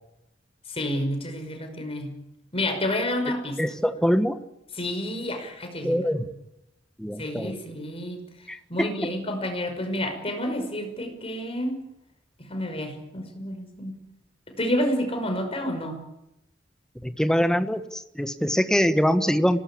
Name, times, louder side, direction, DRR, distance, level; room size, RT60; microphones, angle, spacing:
voice 1, 0.7-2.2 2.5-3.6 4.8-5.9 7.2-8.2 8.7-11.8 12.4-14.0 14.5-16.0, left 1 dB, 30° left, 5 dB, 5.7 m, -29 dB
voice 2, 3.6-4.4 5.8-6.2 7.0-7.5 8.5-9.1 17.0-19.6, equal, 5° left, 9 dB, 1.4 m, -24 dB
25.5 x 19.0 x 8.6 m, 0.88 s
head